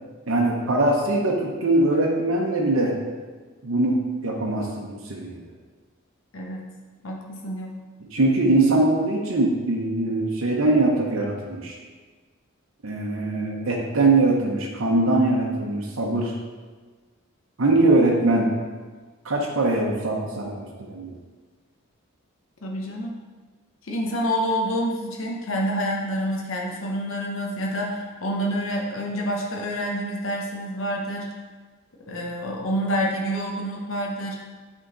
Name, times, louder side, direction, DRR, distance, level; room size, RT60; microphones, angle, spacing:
voice 1, 0.3-2.9 3.6-4.0 4.2-5.4 8.1-11.8 12.8-16.3 17.6-18.5 19.2-21.1, right 2 dB, 70° right, -2 dB, 0.8 m, -22 dB
voice 2, 7.0-7.8 22.6-23.1 23.8-31.3 32.1-34.4, equal, 70° left, -1 dB, 0.8 m, -28 dB
8.0 x 3.7 x 3.8 m, 1.4 s
head